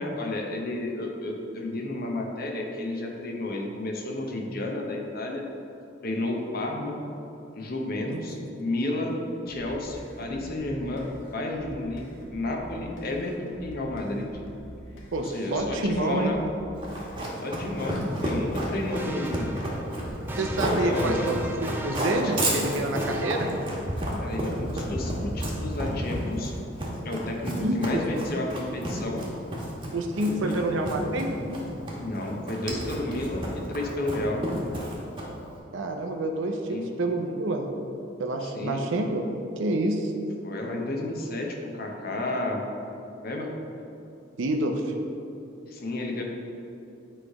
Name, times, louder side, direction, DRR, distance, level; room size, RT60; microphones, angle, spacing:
voice 1, 0.0-5.4 6.0-7.0 7.5-9.1 9.5-12.0 12.3-14.3 15.2-16.4 17.4-19.7 20.8-21.4 22.2-22.3 24.2-26.5 27.0-29.2 30.2-30.6 32.0-34.4 36.7-36.9 38.4-38.8 40.4-42.6 43.2-43.5 45.7-46.2, left 2 dB, 50° left, 1 dB, 0.9 m, -31 dB
voice 2, 8.1-8.5 15.1-16.3 20.4-23.5 27.6-28.1 29.9-31.3 35.7-37.7 38.2-39.3 39.6-40.1 44.4-44.9, right 1 dB, 75° right, 3 dB, 0.6 m, -28 dB
sound 1, 9.5-17.5, equal, 80° left, 1.2 m, -45 dB
Run, 16.8-35.5, right 1 dB, 25° right, 1.2 m, -31 dB
sound 2, 19.0-24.3, right 1 dB, 10° right, 0.3 m, -39 dB
8.9 x 3.3 x 4.8 m, 2.8 s
head